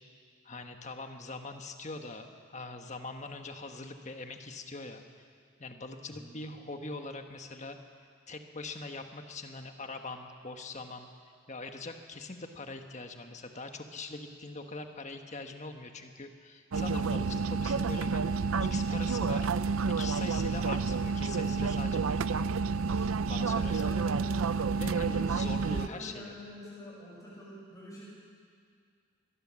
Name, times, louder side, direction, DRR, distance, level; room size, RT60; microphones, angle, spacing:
voice 1, 0.4-5.0 5.6-7.8 8.3-11.1 11.5-19.5 20.0-22.5 22.9-23.9 24.7-26.3, left 3 dB, 35° left, 5 dB, 1.4 m, -42 dB
sound 1, 16.7-25.9, right 4 dB, 75° right, 0.5 m, -29 dB
voice 2, 23.4-24.5 25.1-25.3 25.6-28.0, equal, 15° left, -6 dB, 6.4 m, -47 dB
23.0 x 18.5 x 7.6 m, 2.2 s
head